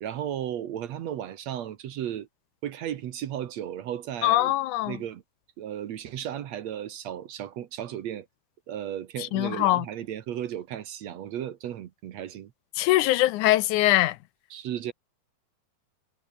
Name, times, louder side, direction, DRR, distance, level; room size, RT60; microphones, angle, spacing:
voice 1, 0.0-2.3 2.6-4.5 4.8-5.2 5.6-8.3 8.7-12.5 14.5-14.9, right 10 dB, 65° right, 2.2 m, -35 dB
voice 2, 4.2-5.0 9.2-9.9 12.8-14.2, left 16 dB, 80° left, 2.1 m, -22 dB
omnidirectional pair, 3.7 m